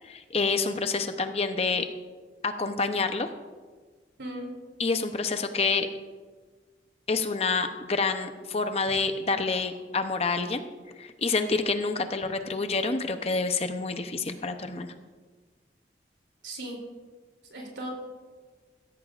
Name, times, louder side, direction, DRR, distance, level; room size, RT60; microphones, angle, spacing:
voice 1, 0.0-1.9 2.4-3.3 4.8-5.9 7.1-10.7 11.0-14.9, left 4 dB, 35° left, 8 dB, 0.7 m, -28 dB
voice 2, 4.2-4.6 16.4-16.8 17.5-17.9, right 1 dB, 85° right, 1 dB, 3.0 m, -37 dB
15.5 x 13.5 x 2.5 m, 1.4 s
head